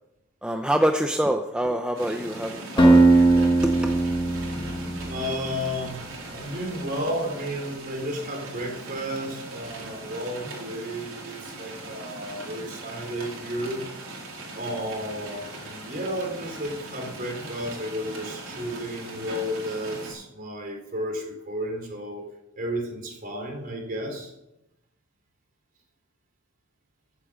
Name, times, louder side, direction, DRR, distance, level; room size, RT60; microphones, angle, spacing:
voice 1, 0.4-3.5 3.8-3.9, right 1 dB, 5° right, 4 dB, 0.6 m, -26 dB
sound 1, 1.9-20.1, right 2 dB, 60° right, 4.5 m, -40 dB
Acoustic guitar, 2.8-5.8, right 2 dB, 20° left, 1.5 m, -19 dB
voice 2, 5.1-6.0 6.3-13.8 14.5-22.2 22.6-24.3, equal, 40° right, 2 dB, 4.1 m, -32 dB
15.0 x 8.8 x 6.4 m, 0.88 s
head